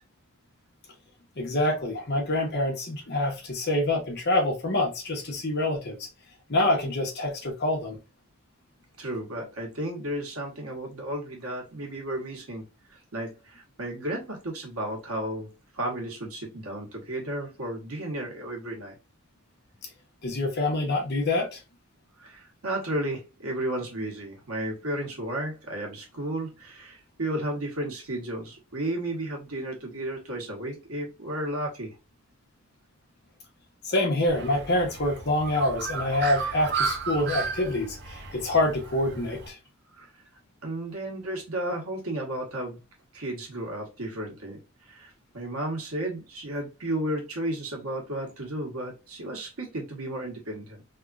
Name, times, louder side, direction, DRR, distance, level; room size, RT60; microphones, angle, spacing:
voice 1, 1.4-6.0 6.5-8.0 20.2-21.6 33.8-39.6, left 1 dB, 50° left, 1.2 m, -26 dB
voice 2, 9.0-12.6 12.9-15.5 15.7-18.9 22.2-32.0 39.9-40.1 40.6-42.8 43.1-44.6 44.8-50.8, right 1 dB, 85° right, 1.3 m, -33 dB
Bird, 34.3-39.5, right 5 dB, 55° right, 0.6 m, -34 dB
3.5 x 2.4 x 2.4 m
head